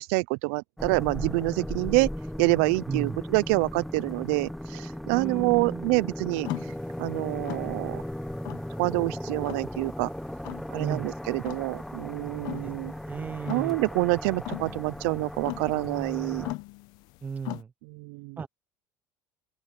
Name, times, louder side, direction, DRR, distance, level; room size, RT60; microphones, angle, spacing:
voice 1, 0.0-2.1 2.4-8.0 8.8-10.1 10.7-12.9 13.5-16.5 17.8-18.4, right 27 dB, 85° right, 0.4 m, -27 dB
sound 1, 0.8-16.5, equal, ahead, 0.9 m, -37 dB
voice 2, 2.9-3.2 5.1-6.0 10.8-11.1 12.5-12.7 13.1-13.8 17.2-17.7 18.4-18.5, right 6 dB, 25° right, 0.6 m, -34 dB
sound 2, 6.4-17.6, left 21 dB, 70° left, 0.8 m, -41 dB
open air
cardioid pair, 125°, 7 cm